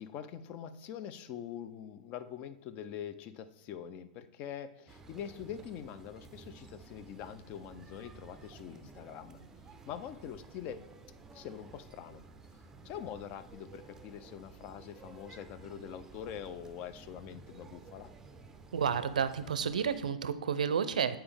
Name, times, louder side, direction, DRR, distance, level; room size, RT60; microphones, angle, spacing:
voice 1, 0.0-9.4 9.9-10.8 11.3-12.2 12.8-18.1, left 9 dB, 35° left, 13 dB, 0.4 m, -44 dB
sound 1, 4.9-20.1, right 4 dB, 10° right, 0.5 m, -53 dB
voice 2, 18.7-21.2, right 7 dB, 70° right, 13 dB, 0.4 m, -31 dB
8.6 x 4.4 x 3.4 m, 1.0 s
figure-of-eight pair, 100°, 4 cm